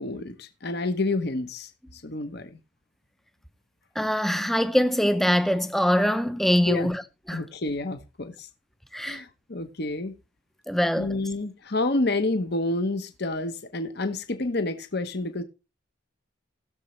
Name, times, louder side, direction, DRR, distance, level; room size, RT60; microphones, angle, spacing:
voice 1, 0.0-2.6 6.7-6.9 7.3-8.5 9.0-10.1 11.0-15.4, left 2 dB, 50° left, 1.0 m, -29 dB
voice 2, 4.0-7.0 7.3-7.4 8.9-9.2 10.7-11.1, equal, ahead, 0.6 m, -23 dB
19.5 x 6.9 x 3.2 m
head